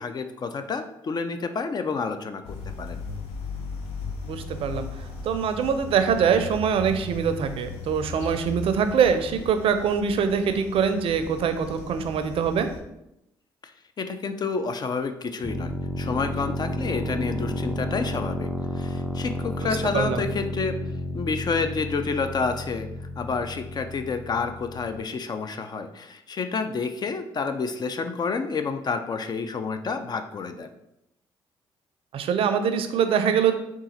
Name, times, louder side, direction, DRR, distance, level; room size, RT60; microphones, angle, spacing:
voice 1, 0.0-3.0 13.6-13.7 14.0-15.7 16.0-18.5 18.8-20.8 21.1-22.9 23.2-30.7, left 4 dB, 40° left, 9 dB, 0.4 m, -29 dB
sound 1, 2.4-12.8, left 3 dB, 80° left, 0.7 m, -37 dB
voice 2, 4.2-4.9 5.2-12.7 19.9-20.3 32.1-33.5, right 7 dB, 65° right, 9 dB, 0.4 m, -23 dB
sound 2, 15.4-25.0, left 1 dB, 10° right, 0.6 m, -32 dB
3.7 x 2.4 x 4.2 m, 0.85 s
supercardioid pair, 55°, 10 cm